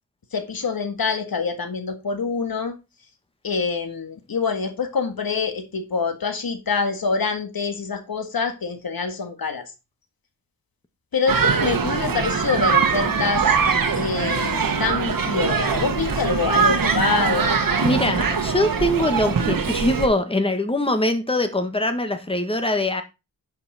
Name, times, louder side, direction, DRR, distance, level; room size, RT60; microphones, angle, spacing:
voice 1, 0.3-2.8 3.4-9.7 11.1-13.4 14.0-17.6, left 5 dB, 90° left, 1.9 m, -25 dB
sound 1, 11.3-20.1, right 5 dB, 70° right, 1.4 m, -22 dB
voice 2, 17.8-23.0, left 1 dB, 15° left, 1.5 m, -22 dB
11.0 x 5.9 x 4.2 m
wide cardioid pair, 95°, 35 cm